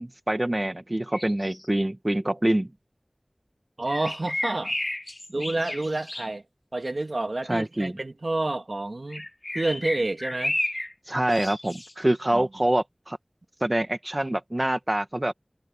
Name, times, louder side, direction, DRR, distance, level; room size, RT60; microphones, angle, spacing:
voice 1, 0.0-2.7 7.5-7.9 11.1-13.2 13.6-15.3, right 1 dB, 35° right, 1.5 m, -25 dB
sound 1, 1.1-1.7 3.9-6.3 9.1-10.9 11.3-11.9, left 1 dB, 40° left, 0.7 m, -32 dB
voice 2, 3.8-4.8 5.3-6.4 6.7-9.3 9.5-10.6 12.3-12.5, right 2 dB, 75° right, 2.0 m, -29 dB
wide cardioid pair, 45°, 0 cm